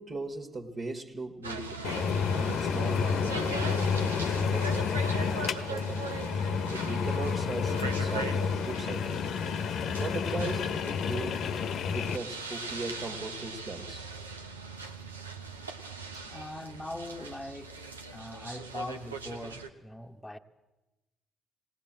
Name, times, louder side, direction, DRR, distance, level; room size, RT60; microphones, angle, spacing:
voice 1, 0.0-1.9 2.3-6.2 6.7-9.3 10.0-11.5 11.9-14.1, right 3 dB, 40° right, 2.0 m, -39 dB
sound 1, 1.4-19.7, right 3 dB, 85° right, 0.9 m, -41 dB
sound 2, 1.8-12.2, left 6 dB, 55° left, 1.0 m, -30 dB
voice 2, 16.1-20.4, left 1 dB, 10° left, 1.2 m, -41 dB
20.0 x 19.0 x 7.5 m
figure-of-eight pair, 45°, 0 cm